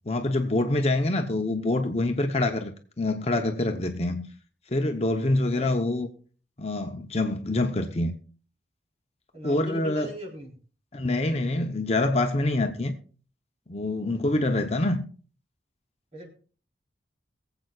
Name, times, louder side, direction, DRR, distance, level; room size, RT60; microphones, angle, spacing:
voice 1, 0.1-4.2 4.7-6.1 6.6-8.1 9.4-10.1 10.9-13.0 13.7-15.0, left 2 dB, 35° left, 0.8 m, -26 dB
voice 2, 9.3-10.5 14.1-14.4 16.1-16.3, equal, 35° right, 3.8 m, -40 dB
22.5 x 7.9 x 2.4 m
head